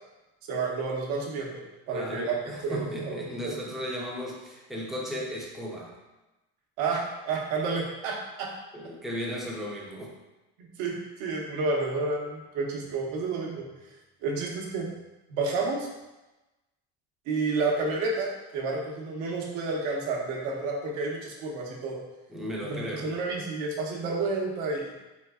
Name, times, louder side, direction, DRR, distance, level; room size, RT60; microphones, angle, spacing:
voice 1, 0.5-2.4 2.6-3.2 3.4-3.6 6.8-8.5 10.6-13.7 14.2-14.9 15.3-15.9 17.3-22.0 22.7-24.9, right 3 dB, 65° right, 0 dB, 0.9 m, -30 dB
voice 2, 1.9-5.9 8.7-10.1 22.3-23.1, equal, ahead, -4 dB, 0.4 m, -35 dB
4.5 x 3.4 x 2.3 m, 1.0 s
cardioid pair, 155°, 37 cm